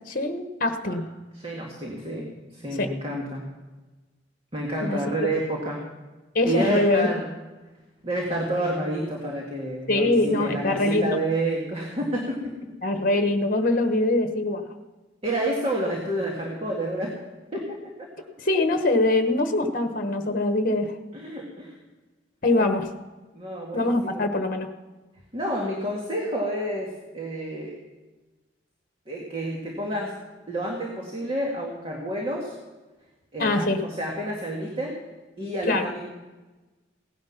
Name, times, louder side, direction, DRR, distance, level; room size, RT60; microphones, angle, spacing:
voice 1, 0.1-1.0 2.8-2.9 4.8-5.0 6.3-7.1 9.9-11.2 12.8-14.6 18.4-20.9 22.4-22.9 23.7-24.7 33.4-33.8 35.7-35.9, left 2 dB, 45° left, 7 dB, 1.1 m, -23 dB
voice 2, 1.3-3.5 4.5-5.8 6.4-7.3 8.0-12.7 15.2-17.2 17.5-18.1 21.1-21.8 22.5-22.7 23.3-24.3 25.3-27.8 29.1-30.2 30.5-32.6 33.3-35.0 35.4-36.0, right 1 dB, 30° right, -2 dB, 2.0 m, -29 dB
17.0 x 10.5 x 5.9 m, 1.2 s
head